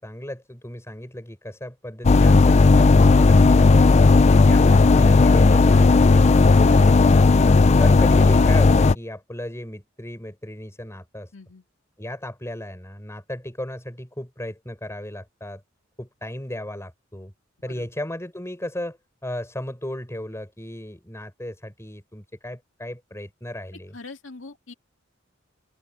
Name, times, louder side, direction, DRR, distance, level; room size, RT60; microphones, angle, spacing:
voice 1, 0.0-4.0 4.4-7.0 7.8-11.3 12.0-15.6 16.0-17.3 17.6-24.0, left 1 dB, 15° left, 6.6 m, -35 dB
sound 1, 2.0-8.9, left 3 dB, 35° left, 0.4 m, -14 dB
voice 2, 11.3-11.6 17.7-17.9 23.9-24.7, left 3 dB, 70° left, 2.4 m, -42 dB
open air
head